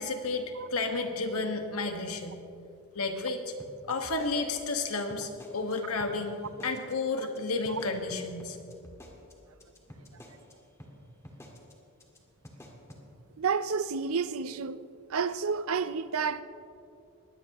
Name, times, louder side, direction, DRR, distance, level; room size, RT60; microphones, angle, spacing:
voice 1, 0.0-2.4 2.9-3.4 3.9-8.6, left 3 dB, 85° left, 1.6 m, -32 dB
sound 1, 3.6-5.7 6.0-6.1 6.4-6.9 7.2-7.4 7.6-10.5 10.8-10.9 11.2-11.7 12.0-12.2 12.4-13.0, equal, 15° left, 1.7 m, -49 dB
voice 2, 13.4-14.8 15.1-16.4, right 5 dB, 75° right, 0.6 m, -30 dB
22.0 x 17.0 x 3.0 m
head